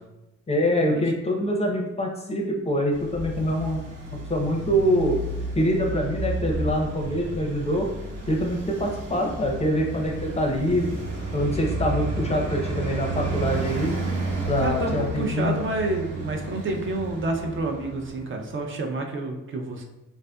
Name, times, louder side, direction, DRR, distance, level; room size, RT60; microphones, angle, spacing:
voice 1, 0.5-3.8 4.3-5.2 5.5-7.9 8.3-11.0 11.3-13.9 14.5-15.5, equal, 20° left, 1 dB, 0.5 m, -25 dB
Traffic noise roadway noise, 2.9-18.4, right 2 dB, 60° right, 1.1 m, -32 dB
voice 2, 14.6-19.8, right 2 dB, 40° right, 2 dB, 0.6 m, -29 dB
4.2 x 2.5 x 2.2 m, 0.93 s
cardioid pair, 90°, 30 cm